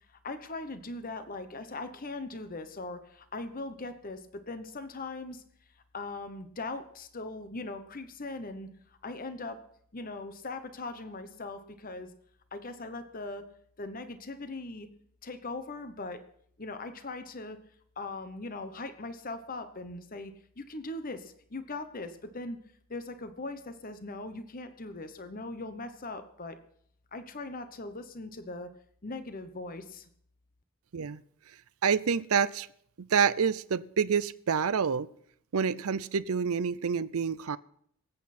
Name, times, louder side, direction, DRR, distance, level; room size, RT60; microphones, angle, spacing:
voice 1, 0.1-5.4 5.9-8.7 9.0-9.6 9.9-12.1 12.5-13.5 13.8-14.9 15.2-16.2 16.6-17.6 18.0-22.6 22.9-26.6 27.1-28.7 29.0-30.1, left 2 dB, 40° left, 9 dB, 1.0 m, -40 dB
voice 2, 31.8-32.7 33.0-35.1 35.5-37.6, right 6 dB, 75° right, 17 dB, 0.6 m, -27 dB
25.0 x 8.4 x 4.3 m, 0.67 s
head